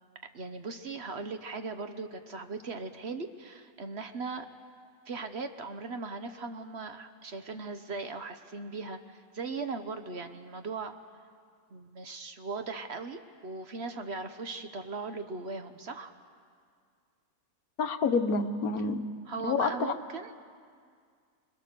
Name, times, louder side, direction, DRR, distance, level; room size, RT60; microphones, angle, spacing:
voice 1, 0.3-4.5 5.1-11.0 11.7-16.1 19.3-20.3, right 4 dB, 50° right, 8 dB, 1.1 m, -38 dB
voice 2, 17.8-19.0 19.4-19.9, left 4 dB, 75° left, 9 dB, 1.4 m, -28 dB
26.5 x 20.5 x 6.8 m, 2.1 s
omnidirectional pair, 1.6 m